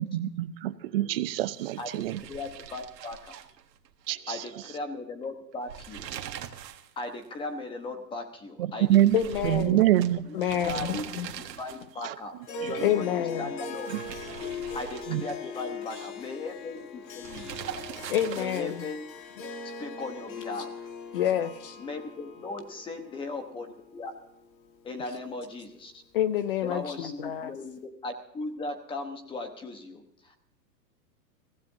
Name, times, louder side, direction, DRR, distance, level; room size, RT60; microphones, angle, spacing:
voice 1, 0.0-2.2 4.1-4.4 8.9-9.2 9.4-10.3 12.0-12.1 12.6-12.7 14.4-14.5 15.1-15.2, right 13 dB, 35° right, 15 dB, 0.7 m, -25 dB
sound 1, 1.6-4.1 4.4-4.5 5.5-6.9 7.2-7.3 8.9-12.0 13.6-15.6 17.2-18.9, right 9 dB, 75° right, 1.7 m, -41 dB
voice 2, 2.3-3.4 4.3-6.2 7.0-9.4 10.3-11.0 11.4-13.9 14.7-17.7 17.9-19.1 19.8-20.9 21.8-24.1 24.8-25.9 26.6-30.4, left 3 dB, 10° left, 6 dB, 1.0 m, -38 dB
voice 3, 9.1-9.8 10.3-11.3 12.8-13.5 18.1-18.8 21.1-21.8 26.1-27.5, left 10 dB, 35° left, 12 dB, 0.6 m, -28 dB
Harp, 12.4-25.0, left 4 dB, 90° left, 2.0 m, -40 dB
22.0 x 16.0 x 2.7 m, 0.73 s
hypercardioid pair, 155°, 50 cm